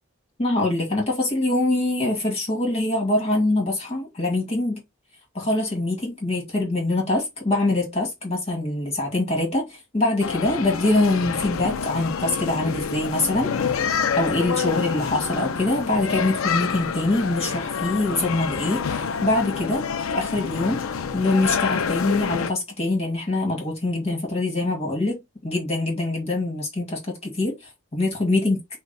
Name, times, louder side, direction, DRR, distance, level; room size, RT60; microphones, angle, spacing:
voice 1, 0.4-4.8 5.3-13.5 14.2-19.8 20.1-20.8 21.1-27.6 27.9-28.6, left 2 dB, 30° left, 1.8 m, -24 dB
sound 1, 10.2-22.5, left 6 dB, 80° left, 0.5 m, -27 dB
5.2 x 2.3 x 4.0 m
head